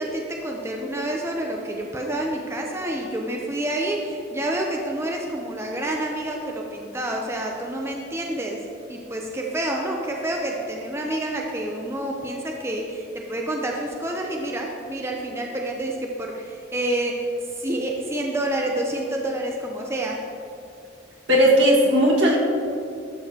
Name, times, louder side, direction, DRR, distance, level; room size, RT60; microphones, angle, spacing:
voice 1, 0.0-8.6 8.9-17.3 17.6-20.2, right 1 dB, 15° right, 0 dB, 0.5 m, -28 dB
voice 2, 21.3-22.4, equal, 75° right, -3 dB, 1.7 m, -16 dB
11.5 x 7.0 x 2.8 m, 2.6 s
head